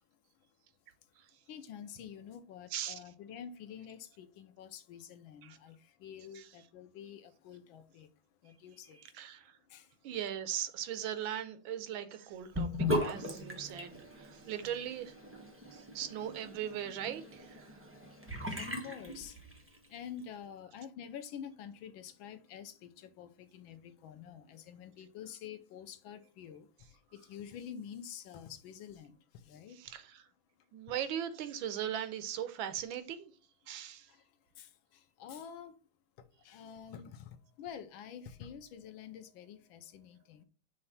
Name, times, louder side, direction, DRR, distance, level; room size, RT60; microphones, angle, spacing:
voice 1, 1.5-8.1 8.4-9.0 9.7-9.9 18.5-19.4 19.9-29.8 34.1-34.2 34.6-35.7 36.2-40.4, left 8 dB, 90° left, 1.5 m, -48 dB
voice 2, 9.0-9.5 10.0-15.1 15.7-17.7 29.7-30.2 30.7-33.3 33.7-34.1, right 10 dB, 85° right, 1.5 m, -39 dB
Sink (filling or washing) / Bathtub (filling or washing), 12.5-19.8, left 1 dB, 10° right, 0.7 m, -38 dB
5.8 x 3.3 x 5.6 m
omnidirectional pair, 2.1 m